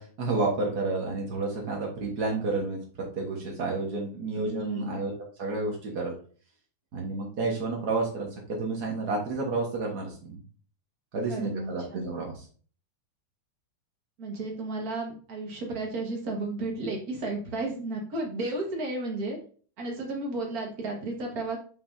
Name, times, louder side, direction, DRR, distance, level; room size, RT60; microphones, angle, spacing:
voice 1, 0.0-6.1 6.9-10.4 11.1-12.3, right 3 dB, 85° right, -1 dB, 0.8 m, -30 dB
voice 2, 4.3-5.0 11.3-12.1 14.2-19.4 19.8-21.6, right 2 dB, 45° right, 0 dB, 1.1 m, -33 dB
6.8 x 5.7 x 2.7 m, 0.41 s
omnidirectional pair, 4.1 m